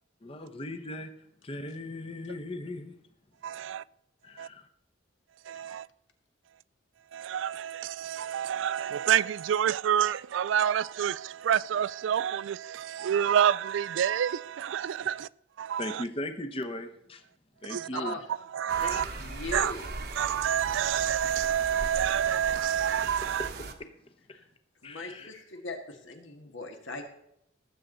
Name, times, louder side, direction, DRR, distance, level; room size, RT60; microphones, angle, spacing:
voice 1, 0.2-1.1 1.4-3.0 3.6-3.7 4.2-4.6 5.5-5.7 15.0-15.1 15.8-17.2 17.6-18.2 19.8-19.9 23.4-23.5 24.8-25.3, left 1 dB, 30° left, 0.8 m, -38 dB
voice 2, 3.4-3.8 4.4-4.5 5.4-5.9 7.1-15.3 15.6-16.0 17.7-18.1 18.5-19.1 19.5-19.7 20.2-23.5, right 9 dB, 75° right, 0.3 m, -28 dB
voice 3, 17.9-18.2 18.8-19.9 24.3-24.5 24.8-27.1, left 2 dB, 80° left, 1.9 m, -39 dB
sound 1, 18.7-23.7, right 3 dB, 55° right, 1.1 m, -39 dB
18.0 x 7.9 x 4.0 m
head